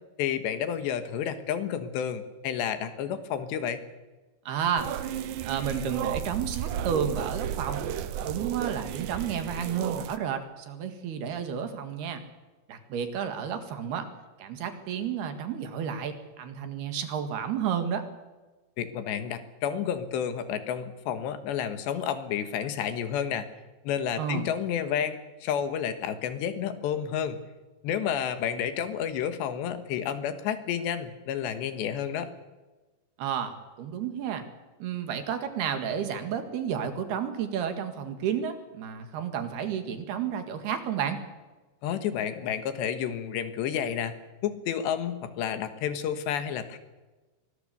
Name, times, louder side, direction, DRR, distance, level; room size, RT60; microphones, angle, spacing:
voice 1, 0.2-3.8 18.8-23.5 23.9-27.4 27.8-32.3 41.8-44.2 44.4-46.8, left 8 dB, 80° left, 10 dB, 3.6 m, -30 dB
voice 2, 4.5-4.9 5.4-7.9 8.2-12.2 12.7-14.1 14.4-18.1 24.2-24.5 33.2-34.5 34.8-41.2, right 8 dB, 65° right, 8 dB, 3.7 m, -31 dB
sound 1, 4.8-10.2, right 10 dB, 90° right, 1.7 m, -33 dB
24.0 x 20.5 x 6.9 m, 1.2 s
omnidirectional pair, 5.1 m